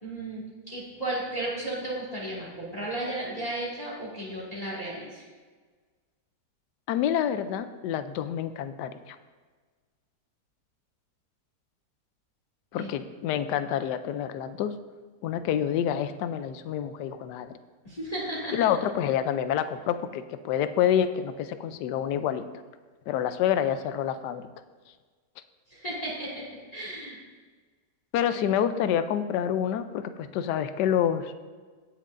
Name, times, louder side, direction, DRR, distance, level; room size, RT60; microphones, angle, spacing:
voice 1, 0.0-5.3 12.8-13.0 17.8-18.7 25.7-26.5 26.7-27.2 28.3-28.4, right 1 dB, 20° left, -6 dB, 2.0 m, -34 dB
voice 2, 6.9-9.2 12.7-14.7 15.2-17.6 18.5-22.5 23.1-24.5 28.1-31.3, left 9 dB, 75° left, 11 dB, 1.2 m, -27 dB
18.0 x 6.5 x 2.5 m, 1.4 s
omnidirectional pair, 1.9 m